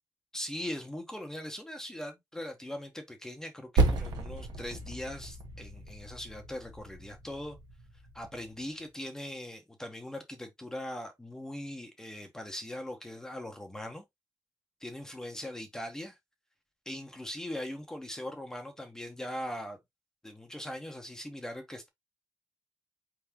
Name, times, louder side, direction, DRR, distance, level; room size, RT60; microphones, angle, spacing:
voice 1, 0.3-7.6 8.1-14.0 14.8-16.2 16.9-19.8 20.2-21.9, left 1 dB, 10° left, 0.9 m, -40 dB
Percussion, 3.8-8.6, right 3 dB, 90° right, 1.4 m, -33 dB
4.6 x 3.6 x 2.9 m
cardioid pair, 145°, 7 cm